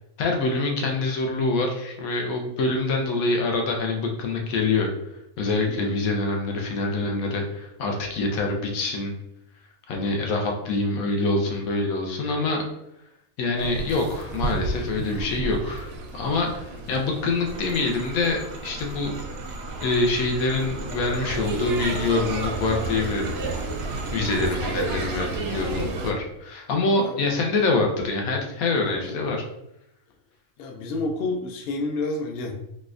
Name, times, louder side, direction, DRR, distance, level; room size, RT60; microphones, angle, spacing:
voice 1, 0.2-4.9 5.4-9.1 9.9-12.6 13.4-19.1 19.8-23.3 24.1-29.4, left 3 dB, 90° left, 1 dB, 1.1 m, -25 dB
voice 2, 5.7-6.0 16.9-17.0 27.0-27.4 28.4-28.5 28.9-29.2 30.6-32.5, left 2 dB, 60° left, 1 dB, 0.7 m, -30 dB
sound 1, 13.6-26.1, right 3 dB, 65° right, 0.6 m, -32 dB
sound 2, 17.4-24.5, right 2 dB, 90° right, 1.2 m, -41 dB
4.1 x 2.3 x 2.4 m, 0.80 s
omnidirectional pair, 1.4 m